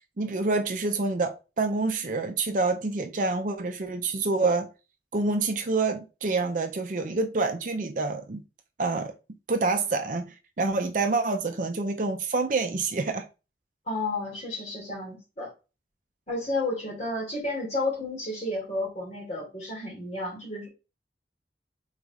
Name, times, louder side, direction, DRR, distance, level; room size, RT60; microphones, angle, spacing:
voice 1, 0.2-4.7 5.1-8.4 8.8-9.1 9.5-13.3, right 3 dB, 45° right, 0.5 m, -27 dB
voice 2, 13.9-15.5 16.3-20.7, left 2 dB, 40° left, 2.5 m, -31 dB
4.9 x 4.0 x 2.4 m
head